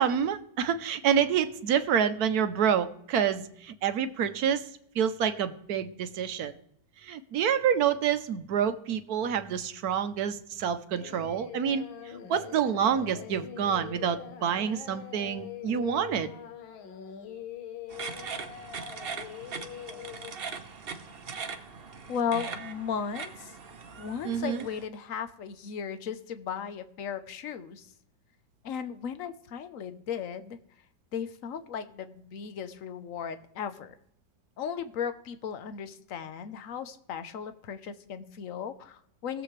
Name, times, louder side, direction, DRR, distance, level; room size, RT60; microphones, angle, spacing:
voice 1, 0.0-4.6 4.9-6.5 7.0-11.9 12.3-16.3 24.2-24.6, right 8 dB, 65° right, 11 dB, 1.1 m, -27 dB
Singing, 10.9-20.4, left 8 dB, 85° left, 1.8 m, -43 dB
sound 1, 17.9-24.8, right 5 dB, 45° right, 0.8 m, -40 dB
voice 2, 22.1-23.6 24.0-27.9 28.6-30.6 31.1-34.0 34.6-39.4, left 7 dB, 55° left, 12 dB, 1.0 m, -36 dB
20.0 x 7.6 x 3.2 m, 0.73 s
omnidirectional pair, 2.1 m